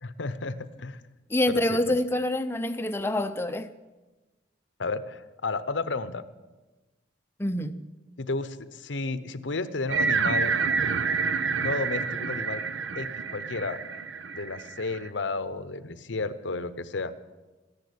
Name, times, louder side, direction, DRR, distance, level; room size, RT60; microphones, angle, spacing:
voice 1, 0.0-1.0 1.5-1.9 4.8-6.2 8.2-10.5 11.6-12.6 13.0-13.8 14.3-17.1, left 3 dB, 75° left, 0.8 m, -32 dB
voice 2, 1.3-3.7 7.4-7.9, left 1 dB, 15° left, 0.5 m, -26 dB
sound 1, 9.9-15.1, right 5 dB, 85° right, 0.7 m, -28 dB
14.5 x 10.5 x 8.5 m
head